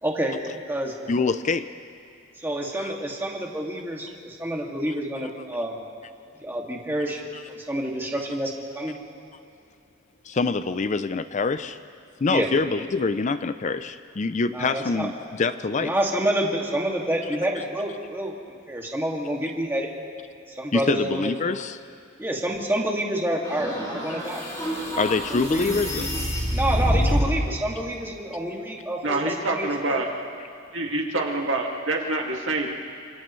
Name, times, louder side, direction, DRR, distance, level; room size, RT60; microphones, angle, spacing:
voice 1, 0.0-0.3 0.7-0.9 2.4-5.8 6.4-9.0 12.3-12.5 14.5-15.1 15.8-18.3 18.7-19.9 20.6-21.3 22.2-24.4 25.5-25.7 26.5-30.0, right 1 dB, 10° right, -2 dB, 2.2 m, -28 dB
voice 2, 1.1-1.7 2.7-3.0 10.2-11.8 12.2-15.9 20.7-21.8 24.9-26.1, left 4 dB, 35° left, 12 dB, 0.4 m, -25 dB
sound 1, 23.4-27.5, equal, 15° left, 6.2 m, -26 dB
voice 3, 29.0-30.1 30.7-32.7, right 2 dB, 65° right, 0 dB, 2.2 m, -26 dB
30.0 x 27.5 x 3.2 m, 2.4 s
head